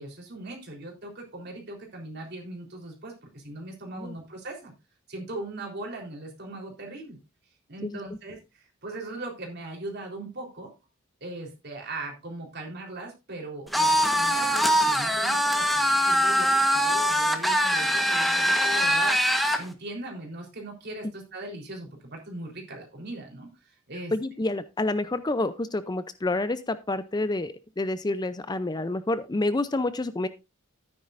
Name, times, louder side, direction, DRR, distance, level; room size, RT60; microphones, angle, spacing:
voice 1, 0.0-4.7 5.1-7.2 7.7-10.7 11.2-24.1, right 2 dB, 50° right, 1 dB, 3.8 m, -39 dB
sound 1, 13.7-19.6, equal, ahead, 1.2 m, -23 dB
voice 2, 24.1-30.3, left 2 dB, 20° left, 13 dB, 0.5 m, -28 dB
12.5 x 9.8 x 2.5 m, 0.25 s
head